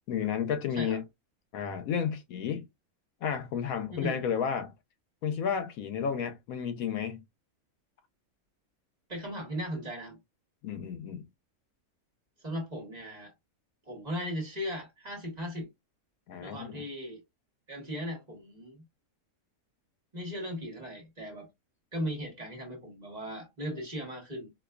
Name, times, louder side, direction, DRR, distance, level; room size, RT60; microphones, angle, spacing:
voice 1, 0.1-1.0 1.5-2.7 3.2-4.7 5.2-7.2 10.6-11.2 16.3-16.8, left 7 dB, 75° left, 1.0 m, -32 dB
voice 2, 3.9-4.2 9.1-10.2 12.4-13.3 13.9-15.7 16.4-17.2 17.7-18.8 20.1-21.5 21.9-24.5, equal, 30° right, 1.1 m, -37 dB
4.3 x 2.2 x 2.3 m
omnidirectional pair, 1.6 m